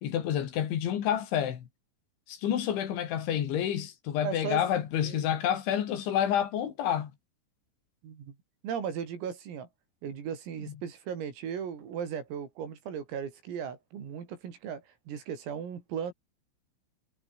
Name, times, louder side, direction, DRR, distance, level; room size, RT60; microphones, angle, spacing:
voice 1, 0.0-1.7 2.3-7.1 10.6-10.7, left 10 dB, 65° left, 4.7 m, -29 dB
voice 2, 4.2-4.6 5.0-5.3 8.0-8.4 8.6-9.7 10.0-16.1, right 8 dB, 85° right, 7.1 m, -37 dB
omnidirectional pair, 5.9 m